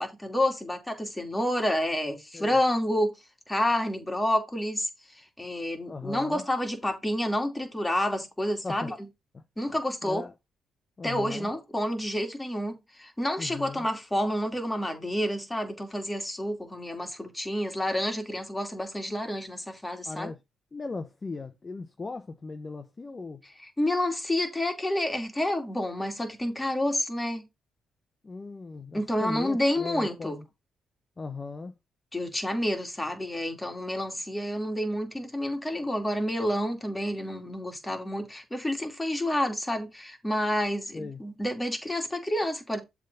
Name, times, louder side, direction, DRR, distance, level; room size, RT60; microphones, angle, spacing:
voice 1, 0.0-3.2 3.5-4.9 5.4-9.0 9.6-10.2 11.0-20.3 23.6-27.4 28.9-30.4 32.1-42.8, left 1 dB, 10° left, 2.6 m, -29 dB
voice 2, 5.9-6.4 8.6-8.9 9.3-9.4 10.0-10.3 11.0-11.5 13.4-13.9 20.0-20.4 20.7-23.4 28.2-30.4 31.2-31.7 40.9-41.2, left 3 dB, 30° left, 0.9 m, -38 dB
7.4 x 3.6 x 5.6 m
cardioid pair, 90°, 0 cm